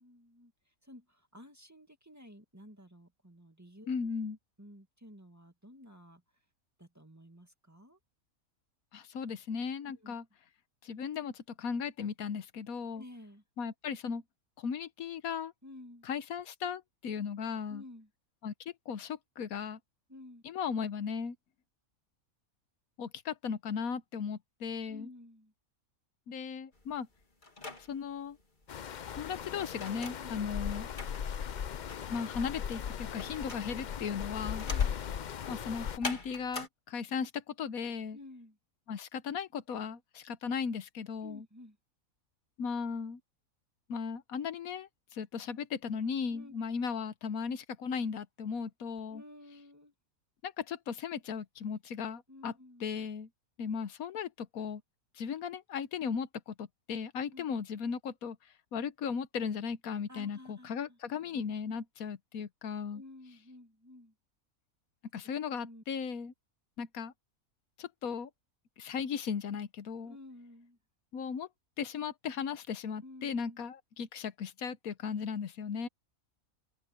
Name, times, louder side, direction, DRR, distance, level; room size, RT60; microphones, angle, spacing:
voice 1, 0.0-4.0 4.6-6.2 6.8-8.0 9.8-10.1 12.9-13.4 15.6-16.1 17.7-18.1 20.1-20.4 24.9-25.5 30.2-30.3 34.6-35.0 38.1-38.6 41.2-41.8 46.3-46.6 49.1-49.9 52.3-52.8 57.3-57.5 60.1-61.0 62.9-64.1 65.6-65.8 70.0-70.8 73.0-73.6, left 1 dB, 10° right, 2.1 m, -53 dB
voice 2, 3.9-4.4 8.9-10.2 10.8-13.0 13.6-14.2 14.6-15.5 16.1-17.8 18.4-19.8 20.4-21.4 23.0-25.1 26.3-27.1 27.9-28.4 29.1-30.9 32.1-34.7 35.5-38.2 38.9-41.4 42.6-43.2 43.9-49.2 50.4-52.5 52.8-53.3 53.6-54.8 55.1-58.4 58.7-63.0 65.1-66.3 66.8-67.1 67.8-68.3 68.8-70.1 71.1-71.5 71.8-75.9, left 6 dB, 85° left, 1.4 m, -37 dB
sound 1, 26.7-36.7, left 2 dB, 35° left, 2.8 m, -45 dB
sound 2, 28.7-36.0, left 8 dB, 60° left, 0.5 m, -37 dB
open air
omnidirectional pair, 1.5 m